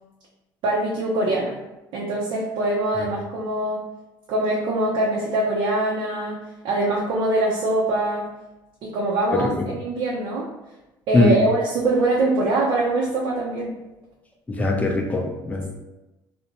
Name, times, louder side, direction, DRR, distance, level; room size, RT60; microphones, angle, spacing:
voice 1, 0.6-1.6 1.9-3.8 4.3-6.4 6.6-8.3 8.8-10.5 11.1-13.7, right 2 dB, 65° right, -4 dB, 0.5 m, -23 dB
voice 2, 14.5-15.7, left 2 dB, 15° left, 1 dB, 0.5 m, -20 dB
2.5 x 2.1 x 2.8 m, 1.0 s
supercardioid pair, 100°, 9 cm